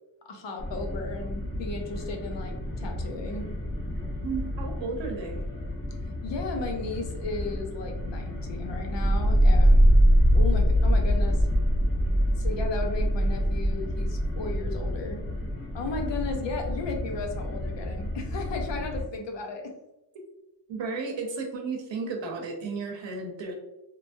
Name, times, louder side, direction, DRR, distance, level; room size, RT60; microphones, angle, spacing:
voice 1, 0.3-3.5 6.2-10.0 10.3-11.5 12.4-15.2 15.7-19.7, left 3 dB, 75° left, 3 dB, 0.7 m, -35 dB
sound 1, 0.6-19.0, left 1 dB, 30° left, 0.9 m, -34 dB
voice 2, 4.2-5.4 20.7-23.5, right 4 dB, 85° right, 2 dB, 0.8 m, -33 dB
sound 2, 8.8-14.9, equal, 5° left, 0.4 m, -21 dB
2.9 x 2.4 x 2.5 m, 0.95 s
wide cardioid pair, 160°, 44 cm